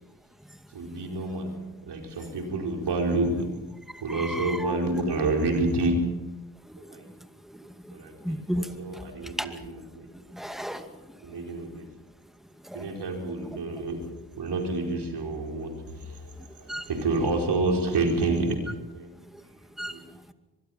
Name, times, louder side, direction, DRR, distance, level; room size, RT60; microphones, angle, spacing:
voice 1, 0.7-3.6 4.0-5.9 6.9-7.1 7.9-10.1 11.2-11.8 12.7-18.6 18.9-19.1 19.9-20.0, right 2 dB, 70° right, 3 dB, 4.6 m, -29 dB
voice 2, 3.9-4.8 6.7-9.6 10.3-11.4 12.6-13.0 16.4-16.9 19.3-19.4 19.8-20.3, equal, ahead, 8 dB, 2.4 m, -36 dB
23.5 x 21.5 x 5.8 m, 1.1 s
supercardioid pair, 55°, 42 cm